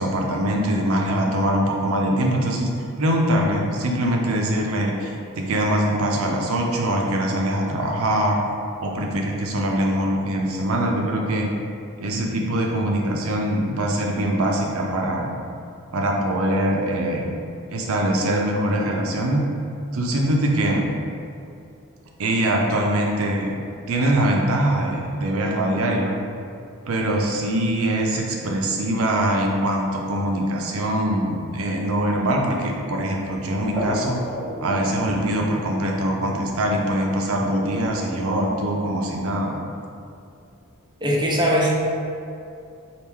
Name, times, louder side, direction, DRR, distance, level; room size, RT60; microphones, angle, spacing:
voice 1, 0.0-2.7 3.0-8.4 8.8-11.5 12.0-15.3 15.9-17.3 17.7-19.5 19.9-20.9 22.2-23.6 23.9-26.2 26.9-34.2 34.6-39.6, right 1 dB, 65° right, 0 dB, 0.6 m, -23 dB
sound 1, 32.2-38.6, equal, 15° left, 1.1 m, -36 dB
voice 2, 41.0-41.8, equal, 20° right, -3 dB, 0.5 m, -20 dB
3.6 x 2.4 x 4.4 m, 2.5 s
head